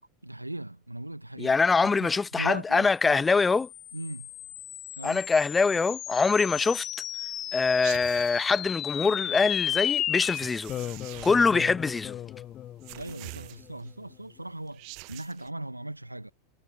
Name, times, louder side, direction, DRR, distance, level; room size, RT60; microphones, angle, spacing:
voice 1, 0.2-1.6 1.8-3.2 3.9-4.3 5.0-5.2 11.5-11.7 13.0-16.3, right 1 dB, 90° right, 1.7 m, -39 dB
voice 2, 1.4-3.7 5.0-6.9 7.5-10.7 11.2-12.2, left 4 dB, 15° left, 0.3 m, -24 dB
sound 1, 3.2-13.9, left 12 dB, 35° left, 1.2 m, -35 dB
sound 2, 7.8-8.6 10.2-11.7 12.8-13.9 14.7-15.5, right 37 dB, 50° right, 0.8 m, -44 dB
figure-of-eight pair, 85°, 0 cm